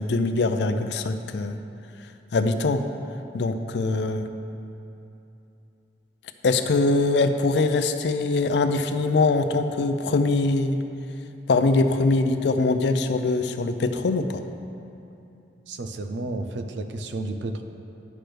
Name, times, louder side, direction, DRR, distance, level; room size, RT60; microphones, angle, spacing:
voice 1, 0.0-1.6 2.3-2.9 3.3-4.3 6.4-10.8 11.5-14.4, left 3 dB, 75° left, 8 dB, 0.4 m, -22 dB
voice 2, 15.7-17.6, right 2 dB, 90° right, 6 dB, 0.5 m, -31 dB
10.0 x 6.0 x 3.3 m, 2.8 s
head